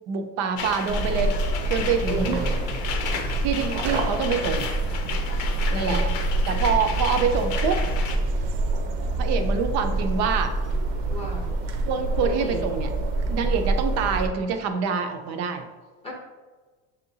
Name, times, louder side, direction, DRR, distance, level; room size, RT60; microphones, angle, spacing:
voice 1, 0.1-1.4 1.7-2.4 3.4-4.7 5.6-6.0 6.5-7.8 9.2-10.5 11.9-12.9 13.3-15.7, right 6 dB, 45° right, 6 dB, 0.4 m, -26 dB
sound 1, 0.6-8.2, left 5 dB, 75° left, 0.7 m, -33 dB
sound 2, 0.9-14.3, right 2 dB, 85° right, 0.7 m, -26 dB
voice 2, 2.1-2.5 5.7-6.2 11.1-11.5 12.2-12.6 16.0-16.1, right 2 dB, 15° left, -3 dB, 0.7 m, -34 dB
6.9 x 2.7 x 2.6 m, 1.4 s
cardioid pair, 155°, 39 cm